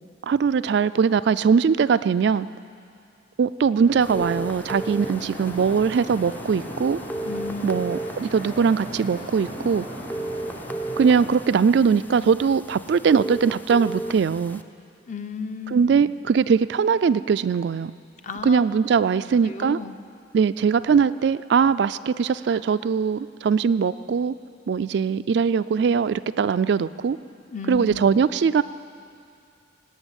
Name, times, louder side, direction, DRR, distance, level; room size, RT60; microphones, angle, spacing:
voice 1, 0.2-2.5 3.4-7.0 7.6-9.9 11.0-14.6 15.7-17.9 18.4-19.8 20.3-24.3 24.7-27.2 27.7-28.6, right 6 dB, 60° right, 14 dB, 0.3 m, -21 dB
sound 1, 3.8-11.3, equal, 70° left, 5.2 m, -37 dB
sound 2, 4.0-14.6, right 1 dB, 10° left, 0.4 m, -35 dB
voice 2, 7.2-7.7 15.1-16.0 18.2-18.6 18.9-20.0 27.5-28.1, left 4 dB, 40° left, 8 dB, 0.7 m, -34 dB
18.5 x 8.6 x 9.0 m, 2.4 s
head